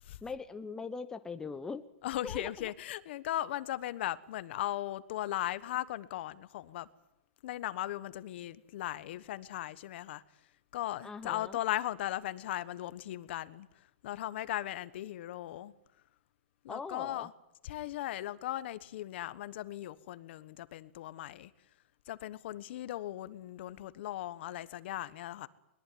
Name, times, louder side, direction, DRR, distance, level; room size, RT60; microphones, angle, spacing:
voice 1, 0.2-1.8 2.2-2.7 11.0-11.6 16.7-17.3, left 4 dB, 10° left, 1.0 m, -41 dB
voice 2, 2.0-6.9 7.4-10.2 10.7-13.7 14.0-15.7 16.6-17.3 17.6-21.5 22.1-25.5, left 14 dB, 55° left, 1.3 m, -37 dB
22.0 x 21.5 x 9.4 m
hypercardioid pair, 155°, 7 cm